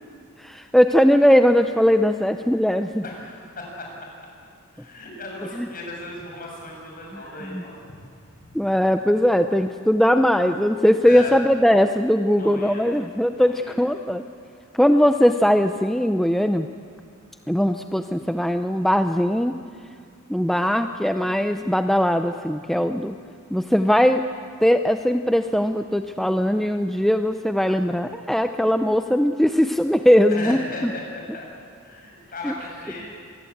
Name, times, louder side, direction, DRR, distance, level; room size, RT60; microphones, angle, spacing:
voice 1, 0.4-3.0 5.6-5.7 7.5-7.6 8.5-14.2 14.7-16.7 17.5-19.5 20.3-23.2 23.5-24.2 24.6-30.6 32.4-32.5, equal, ahead, 7 dB, 0.5 m, -20 dB
voice 2, 3.0-4.1 4.7-8.0 8.4-8.5 11.0-11.3 12.4-12.8 13.3-13.8 30.3-33.0, left 2 dB, 40° left, -1 dB, 7.6 m, -36 dB
25.5 x 20.5 x 8.6 m, 2.1 s
head